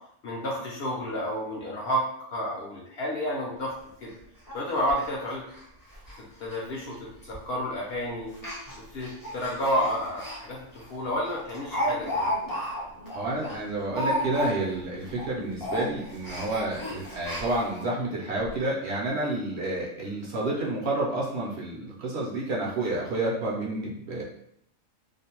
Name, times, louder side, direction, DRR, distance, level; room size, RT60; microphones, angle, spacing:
voice 1, 0.2-3.7 4.0-4.2 4.5-5.4 6.2-8.3 8.9-12.3, equal, 60° left, -3 dB, 0.7 m, -30 dB
Speech, 3.6-3.7 4.0-4.1 4.5-4.6 4.9-5.0 5.5-5.6 5.9-6.2 6.4-6.6 7.3-7.6 8.3-10.4 10.8-10.9 11.2-14.8 15.1-15.3 15.6-17.9 18.4-18.5 18.8-18.9, equal, 30° left, 0.4 m, -33 dB
voice 2, 13.1-24.2, right 2 dB, 65° right, -3 dB, 0.8 m, -30 dB
2.5 x 2.0 x 2.8 m, 0.71 s
omnidirectional pair, 1.4 m